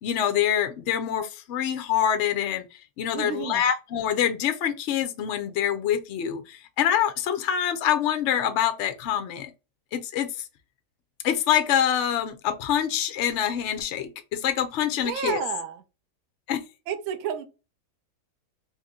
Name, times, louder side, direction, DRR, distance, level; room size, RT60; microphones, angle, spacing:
voice 1, 0.0-2.6 3.0-9.5 9.9-10.3 11.2-15.4 16.5-16.6, left 9 dB, 70° left, 0.7 m, -25 dB
voice 2, 3.1-3.7 15.0-15.8 16.9-17.4, right 8 dB, 65° right, 0.9 m, -31 dB
2.9 x 2.8 x 3.6 m
omnidirectional pair, 1.7 m